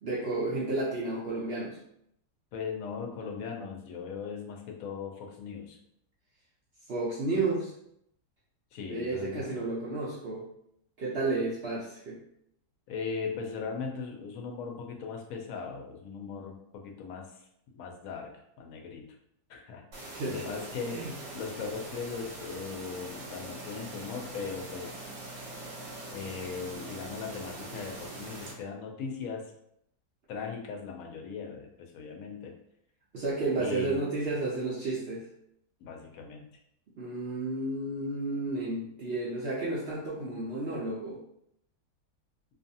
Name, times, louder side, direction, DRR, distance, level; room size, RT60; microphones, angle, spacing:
voice 1, 0.0-1.8 6.9-7.7 8.9-10.4 11.0-12.2 20.1-20.5 20.9-21.1 33.1-35.2 37.0-41.2, right 2 dB, 80° right, -7 dB, 0.5 m, -32 dB
voice 2, 2.5-5.8 8.7-9.6 12.9-17.4 17.7-19.2 19.5-25.0 26.1-29.5 30.3-32.5 33.5-34.1 35.8-36.5, left 5 dB, 70° left, 2 dB, 0.8 m, -39 dB
sound 1, 19.9-28.5, right 2 dB, 60° right, 0.9 m, -43 dB
2.6 x 2.4 x 2.6 m, 0.74 s
omnidirectional pair, 1.8 m